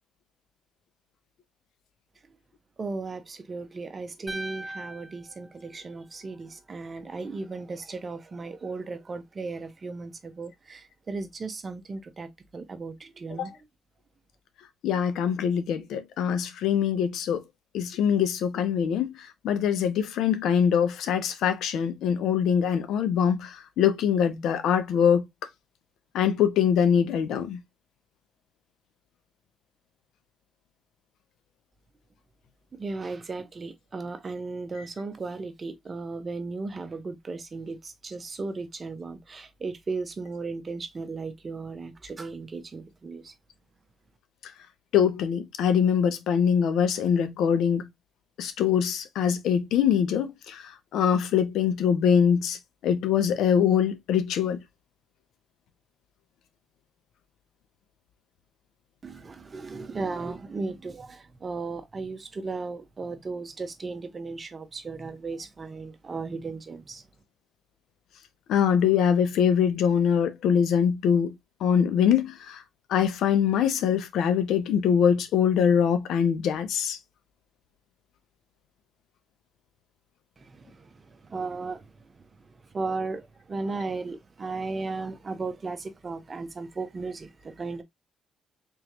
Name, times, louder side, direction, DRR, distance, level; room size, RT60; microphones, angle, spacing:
voice 1, 2.8-13.5 32.7-43.3 59.0-67.0 80.4-81.9 82.7-87.8, right 3 dB, 35° right, 0.8 m, -36 dB
sound 1, 4.3-6.5, right 1 dB, 15° right, 1.0 m, -41 dB
voice 2, 14.8-17.4 17.7-25.3 26.1-27.6 34.8-34.9 44.9-47.9 48.4-54.6 68.5-71.3 71.6-72.6 72.9-77.0, left 8 dB, 80° left, 0.7 m, -23 dB
3.7 x 3.0 x 2.9 m
cardioid pair, 90°, 0 cm